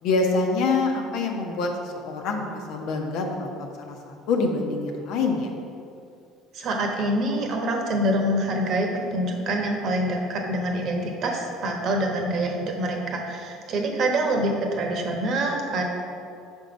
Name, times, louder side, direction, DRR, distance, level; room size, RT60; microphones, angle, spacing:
voice 1, 0.0-5.5, left 3 dB, 65° left, 2 dB, 0.9 m, -26 dB
voice 2, 6.5-15.8, right 1 dB, 55° right, 2 dB, 1.1 m, -25 dB
5.4 x 4.5 x 5.2 m, 2.5 s
hypercardioid pair, 75°, 0 cm